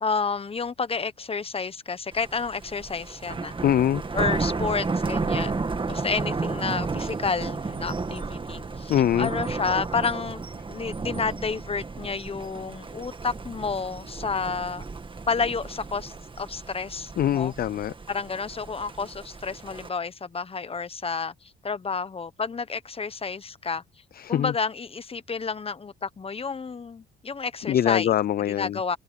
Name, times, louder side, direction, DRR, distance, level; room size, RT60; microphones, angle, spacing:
voice 1, 0.0-3.5 4.1-10.4 10.7-14.8 15.3-17.5 18.1-21.3 21.6-23.8 24.3-28.1 28.5-29.0, left 5 dB, 30° left, 1.2 m, -30 dB
Thunder, 2.1-19.9, right 4 dB, 25° right, 1.8 m, -33 dB
voice 2, 3.6-4.0 8.9-9.3 17.2-17.9 24.1-24.5 27.7-28.8, left 11 dB, 50° left, 0.5 m, -23 dB
cardioid pair, 90°, 20 cm